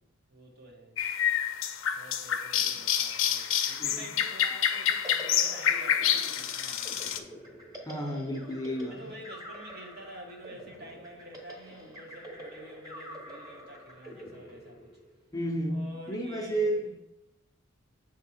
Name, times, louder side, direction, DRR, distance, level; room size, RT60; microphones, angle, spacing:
voice 1, 0.3-0.9 1.9-6.9 8.8-14.9 15.7-16.7, right 1 dB, 55° right, 1.3 m, -48 dB
sound 1, 1.0-7.2, left 9 dB, 75° left, 0.5 m, -28 dB
sound 2, 4.7-15.3, equal, 20° right, 1.1 m, -47 dB
voice 2, 7.9-9.0 15.3-16.8, right 1 dB, 20° left, 0.6 m, -32 dB
7.1 x 3.6 x 4.2 m
head